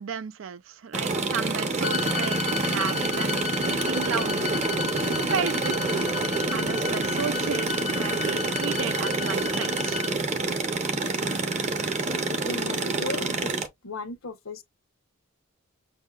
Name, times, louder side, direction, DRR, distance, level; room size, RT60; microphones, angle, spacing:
voice 1, 0.0-4.6 5.3-6.1 6.5-10.0, right 6 dB, 65° right, 0.4 m, -33 dB
sound 1, 0.9-13.7, right 3 dB, 30° right, 0.8 m, -27 dB
sound 2, 1.8-10.1, left 8 dB, 30° left, 0.5 m, -33 dB
voice 2, 12.3-13.5 13.8-14.6, left 2 dB, 75° left, 0.9 m, -35 dB
6.4 x 2.7 x 2.3 m
head